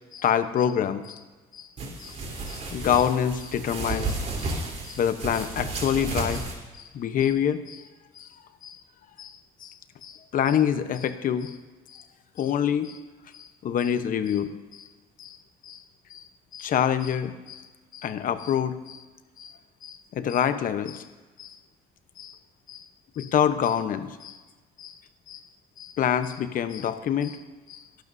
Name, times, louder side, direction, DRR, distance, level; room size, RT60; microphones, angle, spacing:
voice 1, 0.1-1.2 1.5-1.7 2.0-2.2 2.5-4.2 4.4-4.5 4.8-6.4 6.8-7.8 8.2-8.3 8.6-8.8 9.2-9.3 9.6-9.7 10.0-11.5 11.9-12.0 12.4-13.0 13.3-14.5 15.2-15.4 15.6-15.8 16.1-16.2 16.5-17.6 17.9-19.0 19.4-19.5 19.8-21.0 21.4-21.6 22.2-22.3 22.7-22.8 23.2-24.4 24.8-24.9 25.3-25.4 25.8-27.4 27.7-27.8, left 9 dB, 55° left, 10 dB, 1.0 m, -26 dB
sound 1, 1.8-6.5, right 3 dB, 40° right, 3.6 m, -32 dB
23.0 x 11.5 x 2.7 m, 1.3 s
cardioid pair, 110°, 17 cm